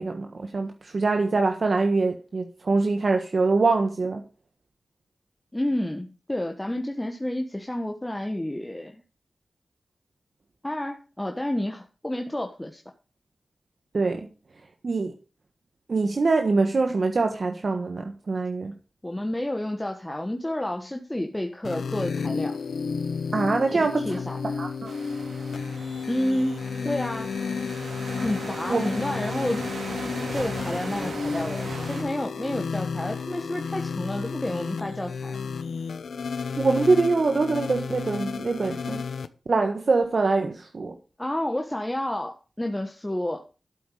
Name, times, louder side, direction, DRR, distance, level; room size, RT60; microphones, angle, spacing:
voice 1, 0.0-4.2 13.9-14.3 14.8-15.1 15.9-18.7 23.3-24.2 24.6-24.9 28.7-28.8 36.6-39.0 39.5-41.0, right 3 dB, 60° right, 1.4 m, -24 dB
voice 2, 5.5-9.0 10.6-12.8 19.0-22.6 23.7-24.4 26.1-27.3 28.2-29.7 30.3-35.4 41.2-43.4, left 1 dB, 15° left, 1.3 m, -30 dB
sound 1, 21.6-39.3, left 5 dB, 85° left, 0.8 m, -32 dB
sound 2, 24.9-32.0, right 4 dB, 90° right, 2.5 m, -38 dB
12.5 x 8.0 x 5.0 m
cardioid pair, 65°, 0 cm